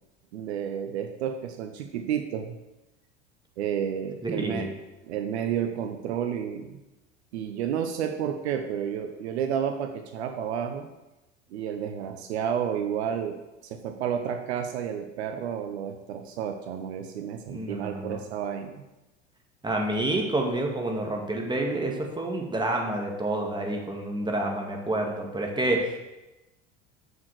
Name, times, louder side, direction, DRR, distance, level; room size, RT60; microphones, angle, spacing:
voice 1, 0.3-2.6 3.6-4.7 5.0-6.8 7.3-10.9 11.5-18.8, right 8 dB, 70° right, 6 dB, 0.9 m, -31 dB
voice 2, 4.2-4.7 17.5-18.2 19.6-26.0, right 1 dB, 15° right, 1 dB, 2.1 m, -28 dB
7.2 x 6.3 x 6.4 m, 1.0 s
figure-of-eight pair, 70°, 34 cm